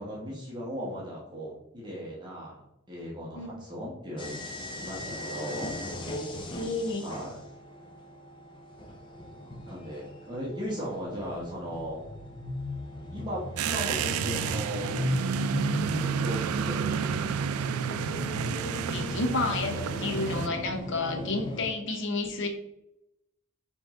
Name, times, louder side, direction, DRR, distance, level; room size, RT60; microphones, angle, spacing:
voice 1, 0.0-5.7 7.0-7.4 9.7-12.0 13.1-15.0 16.0-17.4, equal, 20° right, -5 dB, 1.0 m, -37 dB
sound 1, 4.2-21.7, left 1 dB, 20° left, 0.5 m, -37 dB
voice 2, 6.5-7.0 18.9-22.5, left 3 dB, 55° left, 5 dB, 0.8 m, -30 dB
sound 2, 13.6-20.5, right 7 dB, 85° right, 0.3 m, -30 dB
4.4 x 3.2 x 3.6 m, 0.84 s
head